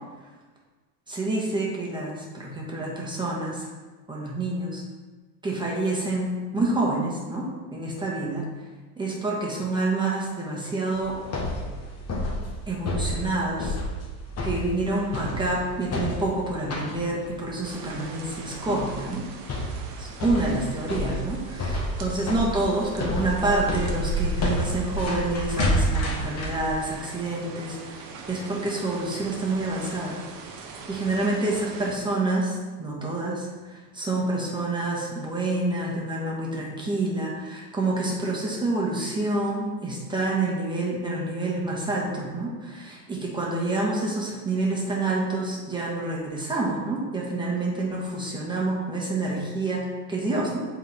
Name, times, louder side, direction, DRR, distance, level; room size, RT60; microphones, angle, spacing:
voice 1, 1.1-3.6 4.1-4.8 5.4-7.5 7.7-8.5 9.0-11.2 12.7-13.8 14.4-19.2 20.0-30.2 30.9-50.6, right 2 dB, 10° right, -4 dB, 1.6 m, -28 dB
sound 1, 10.9-26.6, left 1 dB, 30° left, 1.5 m, -30 dB
sound 2, 17.6-31.9, right 2 dB, 45° right, 1.0 m, -36 dB
7.7 x 3.8 x 3.6 m, 1.3 s
hypercardioid pair, 95°, 49 cm